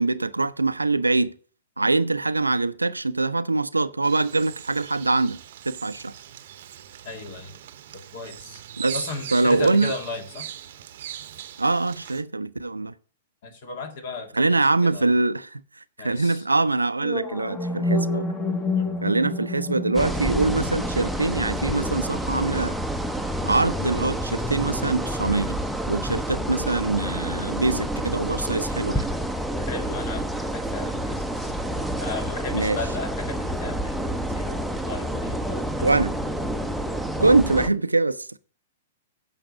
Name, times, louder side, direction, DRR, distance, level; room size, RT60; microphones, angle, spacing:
voice 1, 0.0-1.3 1.8-5.4 5.7-6.1 8.8-9.0 9.3-9.9 11.6-12.9 14.3-18.3 19.0-22.8 23.4-25.6 25.9-29.1 32.5-32.8 35.8-36.1 37.2-38.4, right 3 dB, 85° right, 0.5 m, -23 dB
Bird vocalization bird call bird song, 4.0-12.2, right 11 dB, 50° right, 0.8 m, -40 dB
voice 2, 7.0-7.6 7.9-8.6 8.9-10.5 13.4-15.1 16.0-16.5 18.7-19.0 29.6-31.6 32.0-36.0, left 3 dB, 50° left, 2.0 m, -36 dB
sound 1, 17.0-25.0, left 2 dB, 20° left, 1.2 m, -31 dB
sound 2, 19.9-37.7, right 1 dB, ahead, 0.7 m, -29 dB
8.9 x 5.9 x 6.3 m
figure-of-eight pair, 105°, 0 cm